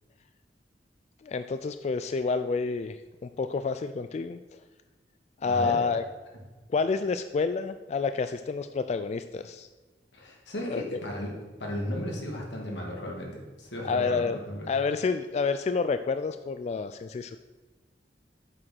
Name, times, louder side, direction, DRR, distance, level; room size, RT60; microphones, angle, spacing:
voice 1, 1.2-4.4 5.4-6.0 6.7-9.7 10.7-10.8 13.8-14.4 14.7-17.4, left 4 dB, 40° left, 10 dB, 0.3 m, -29 dB
voice 2, 5.4-5.8 10.1-14.7, left 1 dB, 90° left, -1 dB, 2.4 m, -35 dB
7.7 x 6.1 x 6.1 m, 1.3 s
head